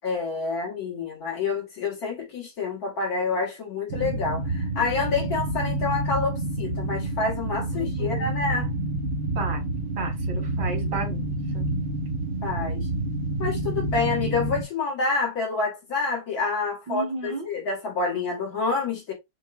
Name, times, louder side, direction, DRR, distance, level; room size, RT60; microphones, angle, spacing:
voice 1, 0.0-8.7 12.4-12.9 13.4-19.1, left 4 dB, 60° left, 2.1 m, -28 dB
sound 1, 3.9-14.6, right 2 dB, 50° right, 0.7 m, -28 dB
voice 2, 7.7-8.3 9.4-9.6 10.0-11.7 16.9-17.5, right 3 dB, 80° right, 2.4 m, -33 dB
6.2 x 2.2 x 2.5 m
omnidirectional pair, 1.8 m